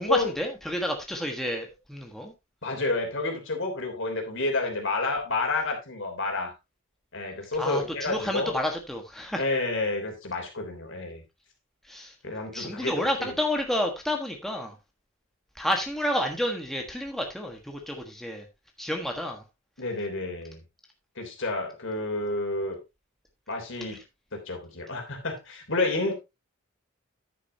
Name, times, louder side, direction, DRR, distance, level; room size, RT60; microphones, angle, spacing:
voice 1, 0.0-2.3 7.6-9.4 11.9-12.1 12.5-14.7 15.6-18.4 18.8-19.4, left 1 dB, ahead, 1.4 m, -30 dB
voice 2, 2.6-6.5 7.1-8.5 9.4-11.2 12.2-13.3 19.8-20.6 21.2-22.8 23.5-24.0 24.3-26.1, left 2 dB, 65° left, 3.2 m, -30 dB
10.0 x 8.8 x 2.8 m
head